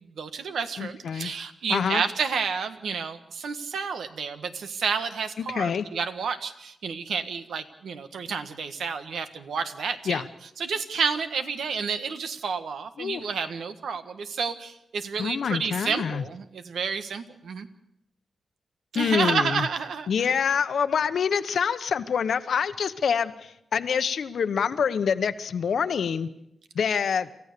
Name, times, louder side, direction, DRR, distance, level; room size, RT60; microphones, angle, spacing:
voice 1, 0.0-10.2 10.6-17.7 18.9-20.4, right 5 dB, 90° right, 9 dB, 1.5 m, -30 dB
voice 2, 0.8-1.3 1.7-2.0 5.5-5.8 10.1-10.3 13.0-13.2 15.2-16.2 18.9-19.7 20.1-26.3 26.7-27.3, left 7 dB, 75° left, 12 dB, 1.0 m, -26 dB
28.0 x 14.5 x 6.8 m, 0.82 s
wide cardioid pair, 105°, 0 cm